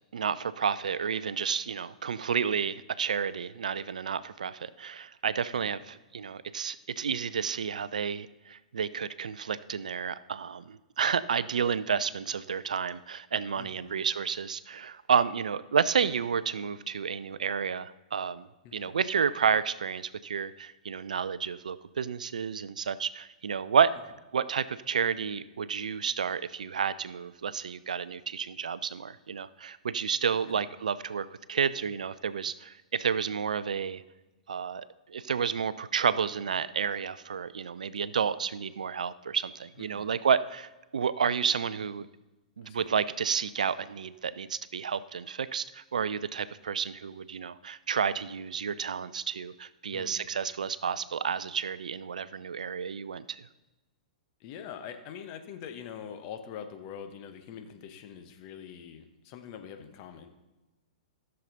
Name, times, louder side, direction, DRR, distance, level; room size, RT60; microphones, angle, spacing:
voice 1, 0.1-18.5 18.7-23.9 24.3-34.0 34.5-42.1 42.6-53.4, right 7 dB, 70° right, 16 dB, 0.4 m, -30 dB
voice 2, 13.6-14.0 18.6-18.9 30.3-30.6 39.8-40.1 42.6-42.9 49.9-50.3 54.4-60.3, left 8 dB, 40° left, 7 dB, 1.1 m, -44 dB
14.5 x 6.7 x 3.9 m, 1.1 s
figure-of-eight pair, 110°, 4 cm